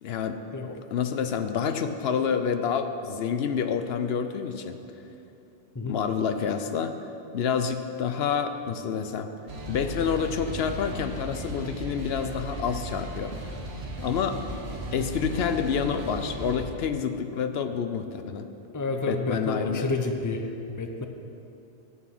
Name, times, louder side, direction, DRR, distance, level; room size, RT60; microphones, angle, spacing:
voice 1, 0.0-0.4 0.9-4.8 5.9-7.0 7.3-9.3 9.7-13.6 14.0-14.4 14.9-18.4 19.1-19.9, left 7 dB, 75° left, 8 dB, 0.9 m, -28 dB
sound 1, 9.5-16.6, right 1 dB, 80° right, 1.5 m, -36 dB
voice 2, 18.7-21.1, left 3 dB, 20° left, 5 dB, 0.6 m, -30 dB
11.5 x 8.2 x 6.0 m, 2.8 s
omnidirectional pair, 1.1 m